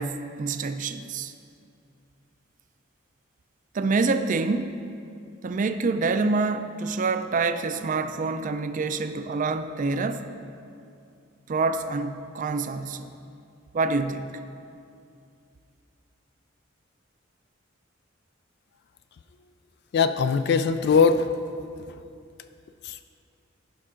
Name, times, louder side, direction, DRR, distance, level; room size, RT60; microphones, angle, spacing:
voice 1, 0.0-1.3 3.7-4.8 5.4-10.3 11.5-13.1 13.7-14.4, right 3 dB, 40° right, 9 dB, 0.4 m, -26 dB
voice 2, 19.9-21.3 22.8-23.0, left 5 dB, 55° left, 11 dB, 0.3 m, -21 dB
14.5 x 5.4 x 3.7 m, 2.5 s
head